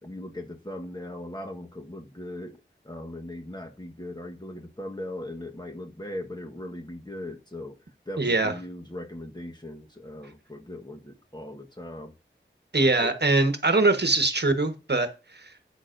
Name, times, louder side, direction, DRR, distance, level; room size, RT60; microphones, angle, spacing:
voice 1, 0.0-2.6 2.8-7.8 8.1-12.1 13.0-13.1, left 1 dB, 20° left, 1.3 m, -39 dB
voice 2, 8.2-8.5 12.7-15.1 15.4-15.5, right 3 dB, 55° right, 1.3 m, -22 dB
11.0 x 8.3 x 2.6 m
wide cardioid pair, 55°, 21 cm